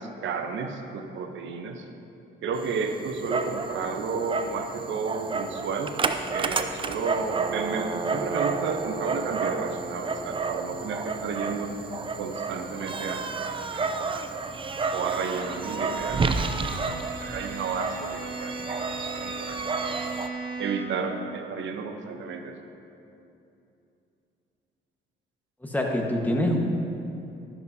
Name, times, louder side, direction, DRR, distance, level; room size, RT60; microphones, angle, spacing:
voice 1, 0.0-1.8 2.4-6.0 6.3-11.7 12.2-14.4 14.9-16.2 16.5-16.6 17.2-19.6 20.6-22.6, right 5 dB, 70° right, 5 dB, 1.0 m, -32 dB
Dog, 2.5-20.3, right 4 dB, 25° right, 0.5 m, -31 dB
Bowed string instrument, 14.6-21.0, right 2 dB, 50° right, 2.2 m, -38 dB
voice 2, 25.6-26.6, left 1 dB, 10° left, 0 dB, 1.4 m, -25 dB
12.0 x 11.0 x 2.8 m, 2.7 s
cardioid pair, 90°, 20 cm